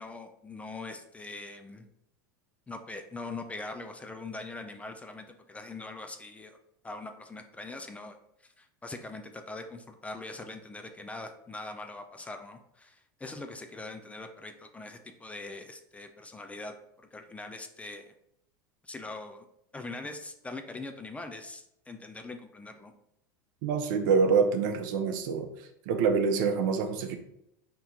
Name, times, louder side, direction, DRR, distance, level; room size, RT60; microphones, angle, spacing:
voice 1, 0.0-1.9 2.7-6.6 6.8-8.2 8.6-18.1 18.8-19.4 19.7-22.9, left 2 dB, 10° left, 6 dB, 0.4 m, -42 dB
voice 2, 23.6-25.5 25.9-27.2, right 5 dB, 70° right, 6 dB, 0.7 m, -26 dB
4.2 x 2.9 x 3.7 m, 0.77 s
supercardioid pair, 110°, 11 cm